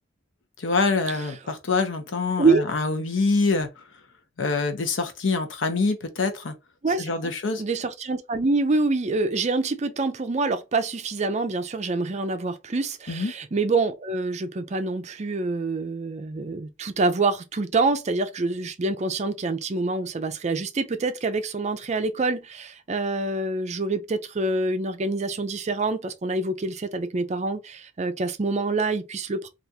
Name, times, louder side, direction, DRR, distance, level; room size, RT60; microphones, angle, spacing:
voice 1, 0.6-3.8 4.4-6.5 7.0-7.6 13.1-13.3, left 3 dB, 85° left, 0.7 m, -25 dB
voice 2, 6.8-7.3 7.6-29.5, right 3 dB, 35° right, 0.5 m, -26 dB
3.4 x 2.4 x 2.7 m
head